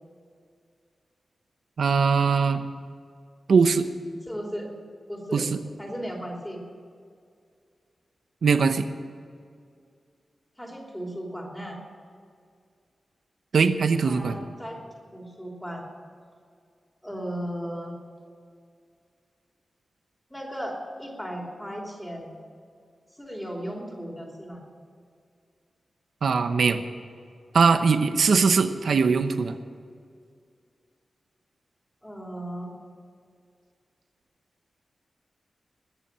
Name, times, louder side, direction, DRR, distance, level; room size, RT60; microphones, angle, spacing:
voice 1, 1.8-2.7 3.5-3.9 5.3-5.6 8.4-8.9 13.5-14.4 26.2-26.8 27.5-29.6, right 5 dB, 75° right, 9 dB, 0.9 m, -21 dB
voice 2, 4.3-4.7 5.1-5.5 5.8-6.6 10.6-11.8 14.0-14.8 15.1-15.8 17.0-17.9 20.3-22.4 23.2-24.6 32.0-32.7, equal, 5° left, -1 dB, 3.2 m, -36 dB
21.0 x 7.3 x 7.5 m, 2.2 s
wide cardioid pair, 125°, 0 cm